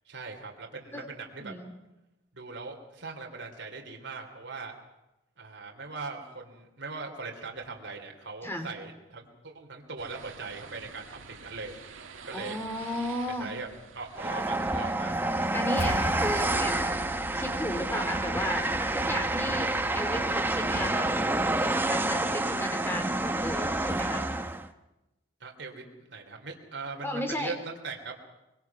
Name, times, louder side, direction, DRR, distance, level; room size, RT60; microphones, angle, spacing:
voice 1, 0.1-1.5 2.3-4.7 5.4-11.7 12.1-12.5 13.3-13.7 13.9-15.1 25.4-28.1, right 4 dB, 65° right, 1 dB, 3.0 m, -40 dB
voice 2, 1.4-1.7 8.4-8.7 12.3-13.5 15.5-17.0 17.3-21.1 21.8-24.3 27.0-27.5, left 1 dB, 10° left, 5 dB, 2.9 m, -34 dB
sound 1, 10.0-15.0, right 5 dB, 80° right, 1.7 m, -48 dB
Train, 14.2-24.7, right 2 dB, 10° right, 0.9 m, -28 dB
sound 2, 15.8-20.3, left 1 dB, 60° left, 2.0 m, -40 dB
24.5 x 22.5 x 6.0 m, 0.98 s
head